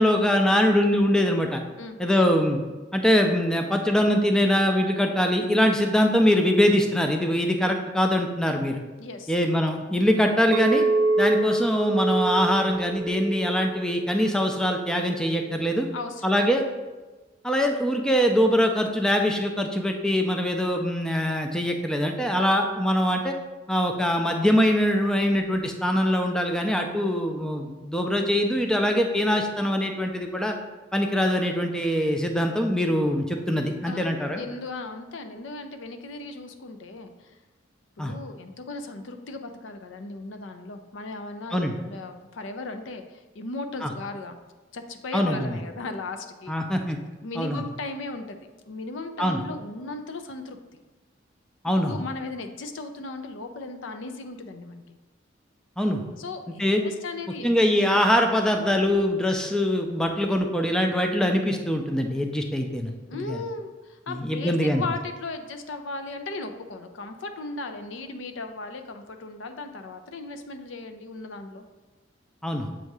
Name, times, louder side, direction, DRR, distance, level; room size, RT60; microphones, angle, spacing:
voice 1, 0.0-1.6 2.0-2.6 2.9-8.8 9.3-10.8 11.2-15.9 16.2-16.6 17.4-23.3 23.7-30.5 30.9-34.4 38.0-38.1 41.5-41.7 43.8-43.9 45.1-45.6 46.5-47.0 47.4-47.6 49.2-49.4 51.6-52.0 55.8-56.0 56.6-56.8 57.4-63.4 64.1-64.8 72.4-72.7, equal, 5° left, 3 dB, 0.4 m, -23 dB
voice 2, 9.0-9.3 15.9-16.5 33.8-37.4 38.0-44.4 44.7-46.5 47.2-50.6 51.8-55.0 56.2-57.7 63.1-71.6, left 3 dB, 75° left, 7 dB, 0.5 m, -37 dB
Chink clink, 10.5-14.8, right 2 dB, 80° right, 0.4 m, -26 dB
7.5 x 2.7 x 4.7 m, 1.2 s
head